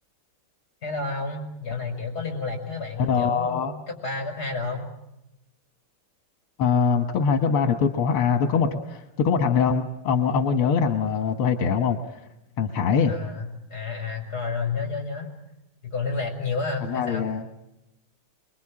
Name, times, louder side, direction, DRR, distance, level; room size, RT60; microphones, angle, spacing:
voice 1, 0.8-4.9 13.1-15.3 15.8-17.2, left 4 dB, 45° left, 4 dB, 5.9 m, -30 dB
voice 2, 3.0-3.7 6.6-12.2 12.6-13.2 16.9-17.4, left 6 dB, 80° left, 6 dB, 2.1 m, -23 dB
25.5 x 23.0 x 8.7 m, 0.91 s
omnidirectional pair, 2.4 m